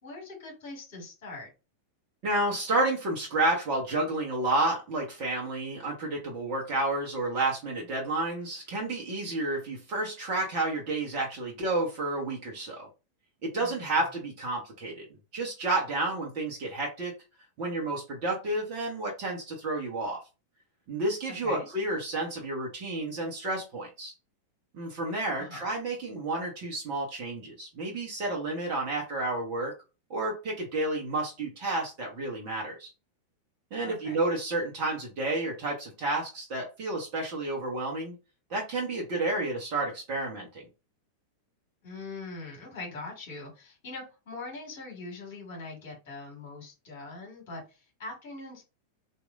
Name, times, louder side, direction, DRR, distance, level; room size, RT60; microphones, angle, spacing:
voice 1, 0.0-1.5 13.6-14.0 21.3-21.7 25.4-25.6 33.8-34.2 41.8-48.6, left 3 dB, 50° left, 0 dB, 1.7 m, -42 dB
voice 2, 2.2-12.9 13.4-15.0 15.3-17.1 17.6-20.2 20.9-24.1 24.7-29.7 30.1-32.9 33.7-38.1 38.5-40.6, right 2 dB, 45° right, -1 dB, 1.0 m, -30 dB
3.0 x 2.6 x 2.4 m, 0.29 s
figure-of-eight pair, 90°, 0 cm